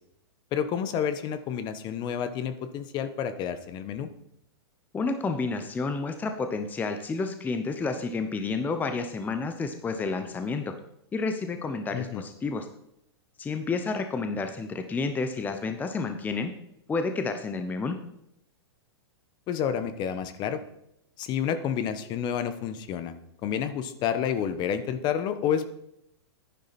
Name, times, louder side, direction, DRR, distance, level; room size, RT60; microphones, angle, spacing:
voice 1, 0.5-4.1 11.9-12.2 19.5-20.6 21.2-23.2 23.4-25.7, left 8 dB, 30° left, 12 dB, 0.9 m, -29 dB
voice 2, 4.9-10.7 11.1-12.6 13.4-16.5 16.9-18.0, left 4 dB, 10° left, 7 dB, 0.8 m, -30 dB
10.5 x 10.0 x 4.2 m, 0.77 s
hypercardioid pair, 140°, 14 cm